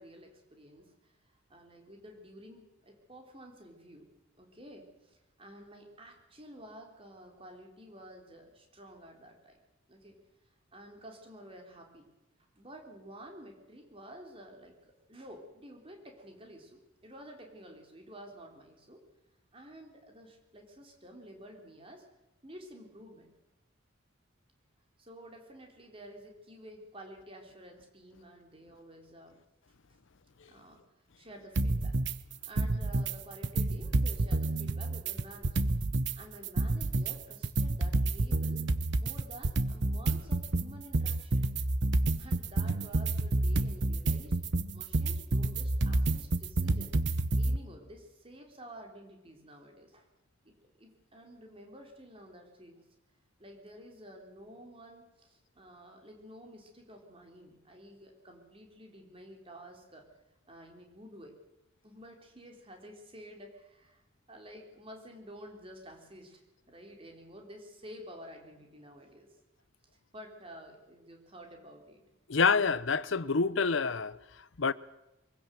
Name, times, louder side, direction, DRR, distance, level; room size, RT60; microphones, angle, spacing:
voice 1, 0.0-4.1 4.4-9.6 9.9-10.2 10.7-12.0 12.6-19.0 19.5-22.0 22.4-23.3 25.0-29.4 30.5-30.8 31.2-32.0 32.4-35.7 36.1-38.7 38.9-41.5 42.2-44.4 44.7-47.0 47.4-50.1 50.4-52.8 53.4-60.1 60.5-61.4 61.8-64.0 64.3-66.4 66.7-69.3 70.1-72.0, equal, 25° right, 3.8 m, -51 dB
sound 1, 31.6-32.1 32.4-33.1 33.4-36.1 36.4-47.6, right 2 dB, 55° right, 0.9 m, -29 dB
voice 2, 72.3-74.2 74.6-74.7, left 5 dB, 65° left, 0.7 m, -27 dB
23.5 x 16.5 x 7.8 m
head